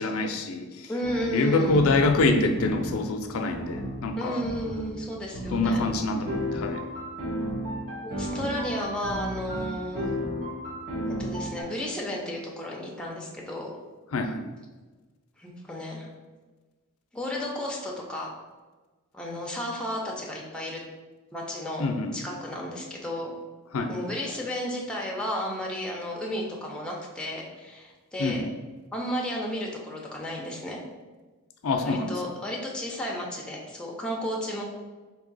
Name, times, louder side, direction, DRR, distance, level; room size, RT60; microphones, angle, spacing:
voice 1, 0.0-0.9 1.3-4.4 5.5-6.8 14.1-14.4 21.8-22.2 23.7-23.9 28.2-28.5 31.6-32.1, left 3 dB, 75° left, 5 dB, 0.5 m, -25 dB
voice 2, 0.9-1.9 4.2-5.9 8.0-10.0 11.2-13.7 15.4-16.1 17.1-18.3 19.1-20.8 21.3-23.3 23.9-28.5 28.9-30.8 31.8-34.6, equal, 5° left, -2 dB, 0.6 m, -33 dB
sound 1, 1.0-1.2 1.6-3.0 3.5-4.0 4.4-4.9 5.3-11.6, equal, 40° right, 1.2 m, -33 dB
3.6 x 2.8 x 4.0 m, 1.3 s
head